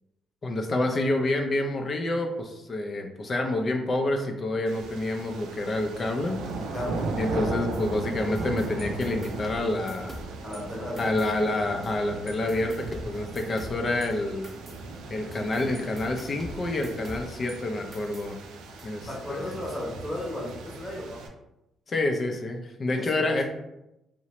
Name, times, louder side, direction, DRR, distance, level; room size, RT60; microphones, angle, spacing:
voice 1, 0.4-6.4 7.2-10.2 11.0-14.5 15.1-18.4 18.8-19.6 21.9-23.4, left 2 dB, 40° left, 3 dB, 0.4 m, -28 dB
sound 1, 4.7-21.3, right 3 dB, 90° right, 0.3 m, -37 dB
voice 2, 6.7-7.1 7.3-7.5 10.4-11.3 15.1-15.4 19.1-21.2 23.0-23.3, left 1 dB, 15° left, -3 dB, 0.9 m, -35 dB
sound 2, 7.7-10.6 11.0-12.0 12.3-17.6 17.9-18.9, equal, 25° right, 0.5 m, -45 dB
2.7 x 2.0 x 2.9 m, 0.91 s
cardioid pair, 90°, 0 cm